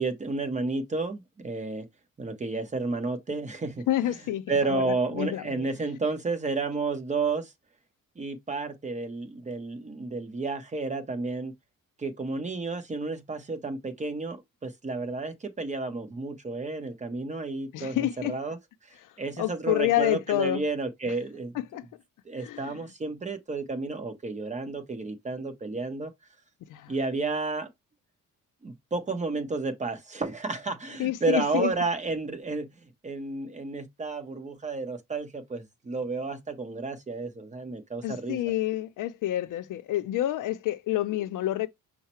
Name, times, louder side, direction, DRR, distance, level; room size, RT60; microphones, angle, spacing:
voice 1, 0.0-1.8 2.2-3.8 4.5-7.5 8.2-11.5 12.0-14.4 14.6-18.6 19.2-21.5 22.3-26.1 26.9-27.7 28.6-32.7 33.0-38.4, right 3 dB, 20° right, 0.9 m, -31 dB
voice 2, 3.9-5.7 17.7-18.3 19.0-19.1 19.4-20.6 21.5-21.9 22.4-22.8 26.7-26.9 31.0-31.7 38.0-41.7, left 14 dB, 65° left, 0.5 m, -28 dB
5.6 x 2.1 x 4.3 m
cardioid pair, 165°, 34 cm